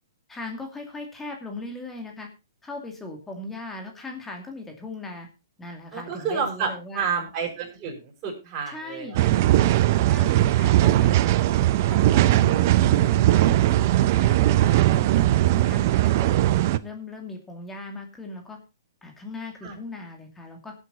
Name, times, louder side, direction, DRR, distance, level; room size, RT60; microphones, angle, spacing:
voice 1, 0.3-2.3 2.6-5.3 5.6-7.1 8.7-9.4 10.0-11.2 11.9-16.4 16.8-18.6 19.0-20.7, left 2 dB, 10° left, 2 dB, 2.5 m, -38 dB
voice 2, 5.9-9.2 19.6-19.8, right 6 dB, 30° right, -4 dB, 6.4 m, -30 dB
sound 1, 9.2-16.8, right 14 dB, 45° right, 0.7 m, -19 dB
17.5 x 8.0 x 4.1 m, 0.28 s
hypercardioid pair, 140°, 2 cm